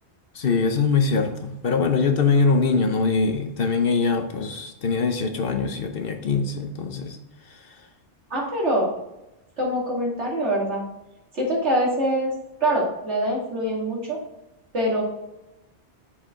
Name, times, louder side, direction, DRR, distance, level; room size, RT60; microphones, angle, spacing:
voice 1, 0.3-7.2 7.5-7.7, left 4 dB, 60° left, 6 dB, 1.0 m, -23 dB
voice 2, 8.3-8.9 9.6-10.8 11.3-12.3 12.6-14.2 14.7-15.0, right 1 dB, 85° right, -4 dB, 2.5 m, -24 dB
7.2 x 4.8 x 3.6 m, 0.93 s
omnidirectional pair, 1.1 m